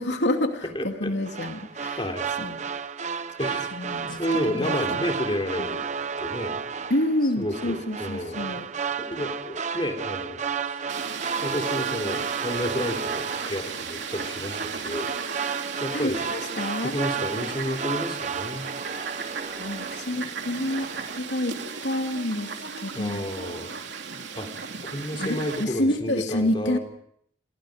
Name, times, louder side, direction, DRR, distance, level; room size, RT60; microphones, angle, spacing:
voice 1, 0.0-2.0 2.4-2.6 3.7-5.1 5.6-5.7 6.9-8.7 15.9-16.9 19.6-20.9 21.1-21.6 21.8-23.2 25.2-26.8, left 1 dB, 85° left, 4 dB, 2.6 m, -28 dB
voice 2, 0.7-1.1 2.0-2.3 3.4-5.8 6.2-6.6 7.4-8.5 9.0-10.9 11.4-15.1 15.8-16.3 16.8-18.7 22.9-23.7 24.3-24.5 24.8-26.8, equal, 30° left, 3 dB, 3.4 m, -31 dB
sound 1, 1.2-20.4 20.7-21.2, right 6 dB, 40° right, 1.1 m, -32 dB
Fowl, 10.9-25.6, right 5 dB, 90° right, 2.9 m, -36 dB
29.5 x 22.5 x 5.1 m, 0.67 s
head